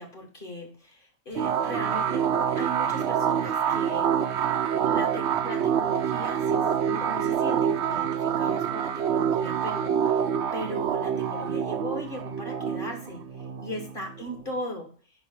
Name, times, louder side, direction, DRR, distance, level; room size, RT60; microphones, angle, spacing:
voice 1, 0.0-2.3 2.6-4.4 4.8-10.3 10.5-14.9, equal, 40° left, 2 dB, 2.2 m, -38 dB
sound 1, 1.4-14.6, right 8 dB, 65° right, 0.8 m, -26 dB
5.4 x 4.8 x 5.6 m, 0.41 s
omnidirectional pair, 1.3 m